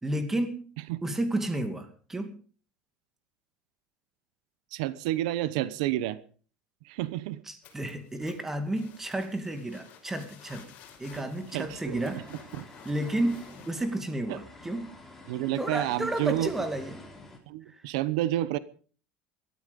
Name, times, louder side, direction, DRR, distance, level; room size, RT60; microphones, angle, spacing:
voice 1, 0.0-0.6 1.0-2.3 7.5-10.7 11.0-12.2 12.8-14.8 15.6-17.0, right 1 dB, 10° right, 2.4 m, -31 dB
voice 2, 4.7-6.2 6.8-7.4 11.2-11.3 11.5-12.6 14.3-14.4 15.3-16.7 17.5-18.6, right 14 dB, 85° right, 1.0 m, -30 dB
sound 1, 7.6-13.9, left 8 dB, 45° left, 5.8 m, -53 dB
sound 2, 11.1-17.4, left 2 dB, 10° left, 4.1 m, -49 dB
18.0 x 13.5 x 5.3 m
cardioid pair, 145°, 4 cm